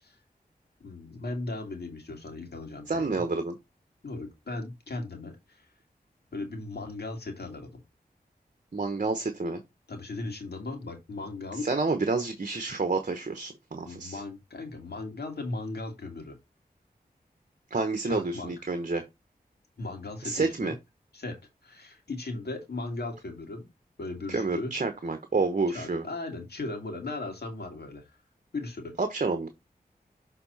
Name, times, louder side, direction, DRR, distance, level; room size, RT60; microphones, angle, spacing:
voice 1, 0.8-3.2 4.0-5.6 6.3-7.8 9.9-11.7 13.9-16.4 18.0-18.5 19.8-20.8 21.1-21.4 21.6-23.7 24.0-24.7 25.7-28.0 28.5-28.9, left 2 dB, 80° left, 2.4 m, -37 dB
voice 2, 2.9-3.6 8.7-9.6 11.5-14.2 17.7-19.0 20.2-20.7 24.3-26.0 29.0-29.5, right 3 dB, 50° right, 1.1 m, -29 dB
7.0 x 3.9 x 4.1 m
wide cardioid pair, 70°, 16 cm